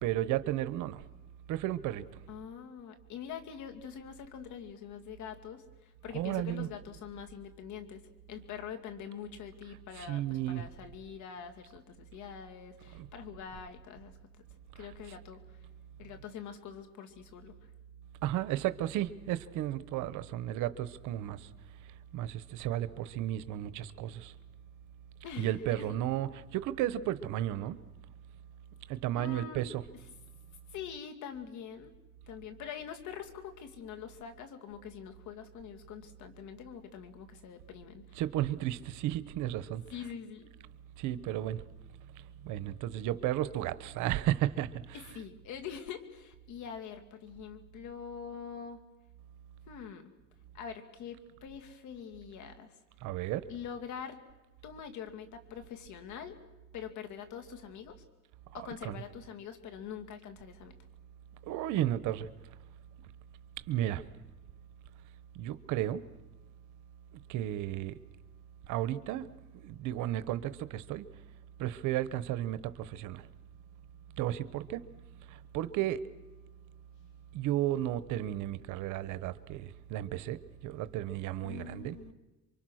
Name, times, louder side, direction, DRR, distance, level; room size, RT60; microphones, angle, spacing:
voice 1, 0.0-1.0 1.5-2.0 6.1-6.7 9.9-10.6 12.9-13.1 18.2-21.5 22.1-24.3 25.4-27.8 28.9-29.8 38.1-39.8 41.0-41.6 42.4-45.0 53.0-53.4 58.8-59.0 61.5-62.3 63.7-64.0 65.3-66.0 67.3-68.0 68.7-69.3 69.6-71.1 71.6-73.2 74.2-74.8 75.3-76.0 77.3-81.9, right 13 dB, 90° right, 1.0 m, -33 dB
voice 2, 2.3-14.2 14.7-15.4 16.0-17.6 25.2-26.0 29.1-29.6 30.7-31.9 32.3-38.2 39.9-40.5 44.9-48.8 49.7-50.1 50.5-52.8 53.5-54.2 54.6-56.4 56.7-58.0 58.5-60.8 81.4-82.1, left 8 dB, 80° left, 2.6 m, -44 dB
28.0 x 24.5 x 6.4 m
cardioid pair, 110°, 29 cm